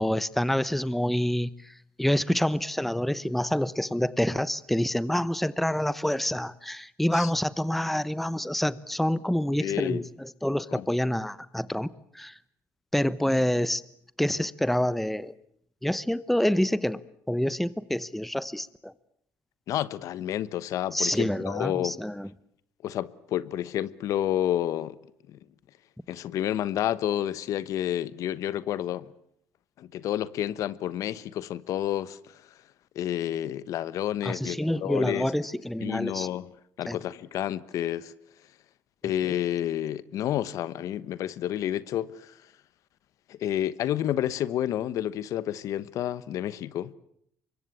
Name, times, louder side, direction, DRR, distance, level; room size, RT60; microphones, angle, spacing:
voice 1, 0.0-1.7 2.0-12.3 12.9-13.8 14.2-15.3 15.8-17.0 17.3-18.9 20.9-22.3 34.2-36.3 36.9-37.0 39.2-39.3, left 1 dB, 5° left, 1.0 m, -27 dB
voice 2, 9.6-10.1 10.7-10.8 19.7-22.0 22.8-25.0 25.3-25.4 26.1-29.1 29.8-32.4 32.9-35.3 35.8-36.5 36.8-38.1 39.0-42.3 43.3-46.9, left 11 dB, 70° left, 1.1 m, -30 dB
25.0 x 23.0 x 8.4 m
cardioid pair, 95°, 6 cm